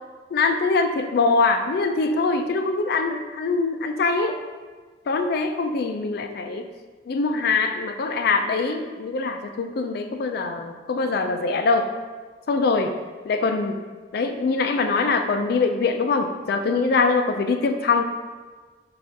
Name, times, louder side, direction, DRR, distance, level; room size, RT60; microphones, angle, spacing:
voice 1, 0.3-4.4 5.1-6.7 7.1-11.9 12.5-13.0 13.2-13.8 14.1-18.0, left 4 dB, 55° left, 6 dB, 0.3 m, -23 dB
6.2 x 2.4 x 2.7 m, 1.4 s
head